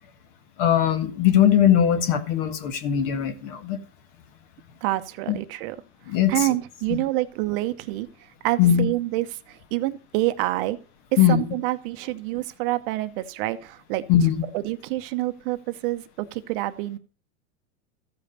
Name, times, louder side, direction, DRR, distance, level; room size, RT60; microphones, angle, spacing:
voice 1, 0.6-3.8 5.3-5.4 6.1-6.3 6.9-7.0 8.6-8.8 11.2-11.4 14.1-14.5, left 10 dB, 50° left, 1.8 m, -20 dB
voice 2, 4.8-5.8 6.1-10.8 11.3-14.0 14.5-17.0, right 17 dB, 50° right, 0.9 m, -27 dB
14.0 x 5.3 x 6.6 m
supercardioid pair, 145°, 36 cm